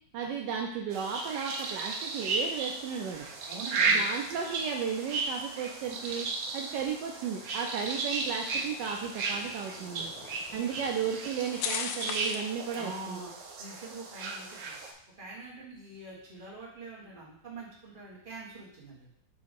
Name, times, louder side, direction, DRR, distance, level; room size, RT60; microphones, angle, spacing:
voice 1, 0.1-3.3 3.9-6.3 6.5-10.1 10.5-13.2, right 7 dB, 75° right, 1 dB, 1.2 m, -34 dB
sound 1, 0.9-14.9, right 3 dB, 60° right, 0.9 m, -35 dB
sound 2, 1.9-12.6, left 7 dB, 85° left, 1.3 m, -44 dB
voice 2, 3.4-4.0 10.5-10.8 12.7-13.3 13.6-14.8 15.2-19.1, right 3 dB, 30° right, -5 dB, 1.6 m, -44 dB
6.3 x 2.9 x 5.2 m, 0.70 s
omnidirectional pair, 2.0 m